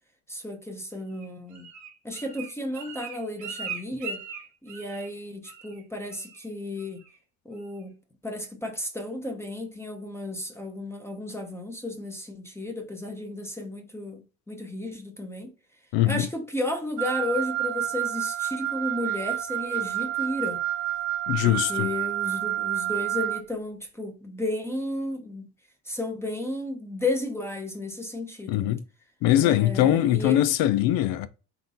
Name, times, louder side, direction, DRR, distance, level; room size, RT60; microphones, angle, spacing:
voice 1, 0.3-1.7 2.0-4.2 4.6-7.0 7.4-14.2 14.5-15.5 16.1-20.6 21.4-25.5 25.8-28.8 29.3-30.4, left 2 dB, 5° left, 0.9 m, -33 dB
Bird, 1.1-5.2 5.4-5.8 6.1-6.4 6.8-7.2 7.6-7.7, right 6 dB, 50° right, 1.1 m, -40 dB
voice 2, 15.9-16.3 21.3-21.9 28.5-28.8 29.2-31.3, left 13 dB, 75° left, 0.6 m, -22 dB
Wind instrument woodwind instrument, 17.0-23.4, right 13 dB, 85° right, 0.5 m, -29 dB
4.0 x 2.6 x 3.8 m
supercardioid pair, 100°, 36 cm